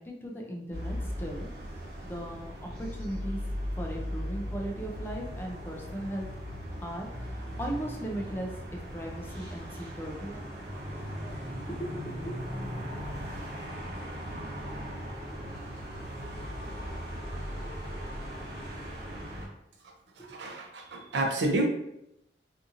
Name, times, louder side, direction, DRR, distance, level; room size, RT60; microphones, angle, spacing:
voice 1, 0.0-1.5 2.0-3.4 3.8-6.3 6.8-8.5 8.9-10.9 11.2-12.7 20.2-20.6 20.9-21.1, right 1 dB, 10° left, 0 dB, 0.4 m, -38 dB
sound 1, 0.7-19.5, equal, 60° right, 0.9 m, -38 dB
voice 2, 20.2-21.6, right 2 dB, 80° right, 2 dB, 0.5 m, -30 dB
2.7 x 2.6 x 2.5 m, 0.82 s
head